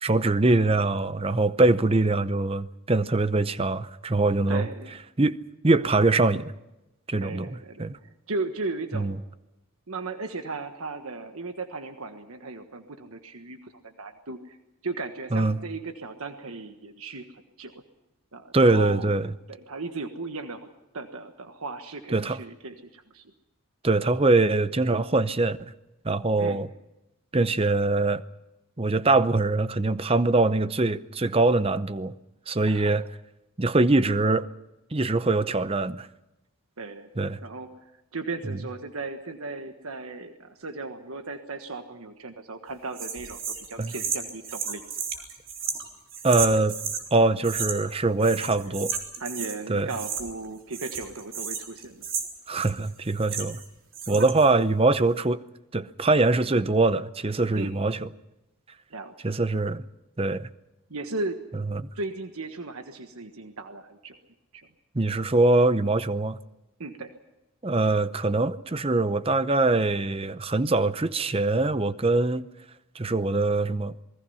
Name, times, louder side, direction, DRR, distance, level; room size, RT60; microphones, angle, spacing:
voice 1, 0.0-4.7 5.2-5.4 5.6-6.5 7.1-7.5 7.8-8.0 8.9-9.1 15.3-15.6 18.5-19.3 22.1-22.4 23.8-25.6 26.0-26.7 27.3-28.2 28.8-32.1 32.5-33.0 33.6-34.5 34.9-36.1 37.2-37.4 43.8-43.9 46.2-46.8 47.1-49.0 49.7-49.9 52.5-53.6 54.1-55.4 55.7-58.1 59.2-59.8 60.2-60.5 61.7-61.9 64.9-66.4 67.6-72.5 72.9-73.9, right 2 dB, 25° right, 0.7 m, -23 dB
voice 2, 4.5-5.0 7.2-9.2 9.9-14.6 14.8-17.7 18.3-19.1 19.5-20.7 20.9-23.3 26.4-26.6 32.6-33.0 36.8-37.1 37.4-43.4 43.7-45.2 48.6-48.7 49.2-52.1 54.1-54.2 57.6-57.8 58.9-59.1 60.9-61.4 61.9-64.2 64.5-64.7 66.8-67.1, right 3 dB, 80° right, 1.4 m, -36 dB
sound 1, 42.9-47.0 47.4-47.9 48.2-49.6 49.9-50.5 50.7-53.7 53.9-54.5, right 6 dB, 60° right, 3.6 m, -33 dB
27.5 x 20.5 x 5.6 m
head